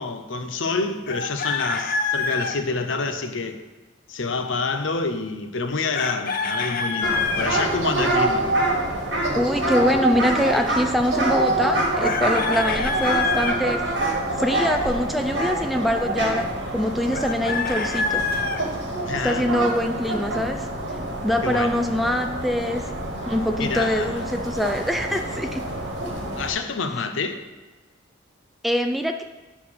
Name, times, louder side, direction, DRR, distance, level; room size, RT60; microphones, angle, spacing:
voice 1, 0.0-3.6 4.1-8.5 19.1-19.7 21.4-21.8 23.6-24.2 26.4-27.4, left 4 dB, 80° left, 7 dB, 0.8 m, -27 dB
Chicken rooster, 1.1-2.6 5.9-7.5 12.0-13.6 17.1-18.6, left 4 dB, 45° left, 0.6 m, -26 dB
sound 1, 7.0-26.5, right 2 dB, 60° right, 1.6 m, -26 dB
voice 2, 8.0-8.3 9.4-13.8 14.4-18.4 19.2-20.7 21.2-22.9 23.3-25.6 28.6-29.2, equal, ahead, 5 dB, 0.4 m, -24 dB
9.6 x 4.1 x 5.8 m, 1.2 s
head